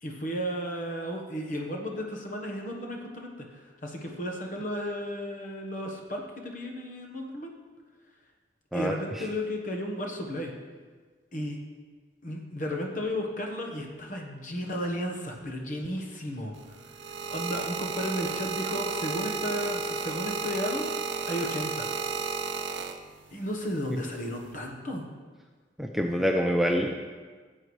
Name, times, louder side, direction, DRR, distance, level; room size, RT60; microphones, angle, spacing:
voice 1, 0.0-7.5 8.7-10.5 11.3-11.6 12.2-16.8 17.1-20.9 21.2-21.9 23.3-25.1, equal, 45° left, 1 dB, 1.2 m, -34 dB
voice 2, 8.7-9.3 25.8-26.9, equal, ahead, 1 dB, 0.4 m, -26 dB
sound 1, 16.5-23.4 24.2-24.5, right 5 dB, 70° right, 0.6 m, -33 dB
13.5 x 7.8 x 3.2 m, 1.4 s
head